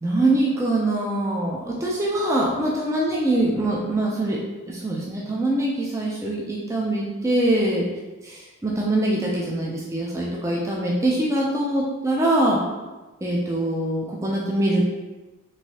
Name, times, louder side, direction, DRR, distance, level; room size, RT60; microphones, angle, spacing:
voice 1, 0.0-4.4 4.7-7.8 8.2-12.6 13.2-14.9, right 1 dB, 15° right, -4 dB, 0.3 m, -23 dB
3.1 x 2.6 x 2.8 m, 1.2 s
head